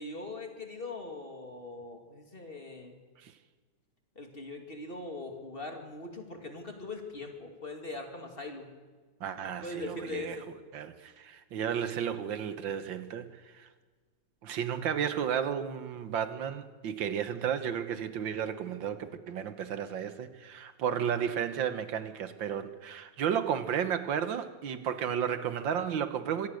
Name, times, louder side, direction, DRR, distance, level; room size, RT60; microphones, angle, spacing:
voice 1, 0.0-3.0 4.2-8.7 9.6-10.5, left 2 dB, 30° left, 4 dB, 2.6 m, -41 dB
voice 2, 9.2-10.4 10.7-13.7 14.4-26.5, right 8 dB, 80° right, 11 dB, 1.9 m, -33 dB
25.5 x 17.5 x 6.5 m, 1.4 s
omnidirectional pair, 2.1 m